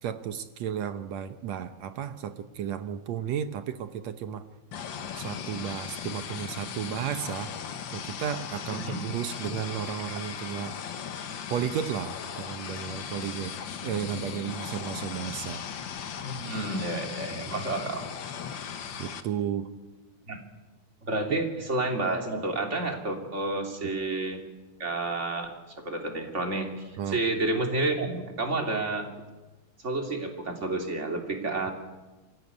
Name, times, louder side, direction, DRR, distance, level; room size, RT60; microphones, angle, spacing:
voice 1, 0.0-4.4 5.1-7.5 7.9-10.7 11.5-13.5 13.8-15.6 17.3-17.5 19.0-19.7 21.3-21.5 23.8-23.9 27.0-27.2, right 9 dB, 70° right, 10 dB, 2.0 m, -33 dB
sound 1, 4.7-19.2, left 8 dB, 55° left, 1.4 m, -38 dB
voice 2, 8.7-9.0 16.2-18.1 20.3-20.4 21.0-24.4 24.8-25.5 25.8-29.1 29.8-31.7, right 2 dB, 25° right, 3 dB, 2.9 m, -30 dB
24.5 x 16.0 x 9.6 m, 1.2 s
omnidirectional pair, 3.4 m